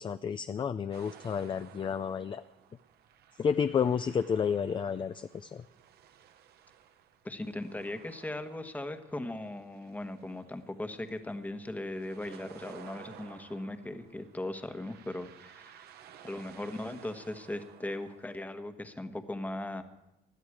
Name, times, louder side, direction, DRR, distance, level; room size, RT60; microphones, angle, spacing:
voice 1, 0.0-2.4 3.4-5.6, left 7 dB, 30° left, 11 dB, 0.4 m, -31 dB
sound 1, 0.9-18.4, right 9 dB, 70° right, 1.0 m, -55 dB
voice 2, 7.2-15.8 16.2-19.8, left 1 dB, 10° left, 8 dB, 1.2 m, -38 dB
20.0 x 12.5 x 4.8 m, 0.90 s
cardioid pair, 110°, 17 cm